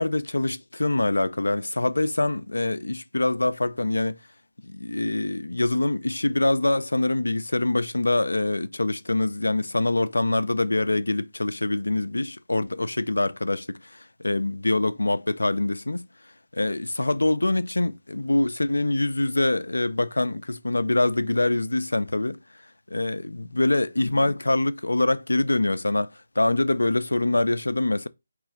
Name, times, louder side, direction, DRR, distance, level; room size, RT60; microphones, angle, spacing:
voice 1, 0.0-4.2 4.6-16.1 16.5-22.4 22.9-28.1, left 2 dB, 75° left, 0.4 m, -24 dB
4.7 x 3.1 x 3.6 m
figure-of-eight pair, 150°, 0 cm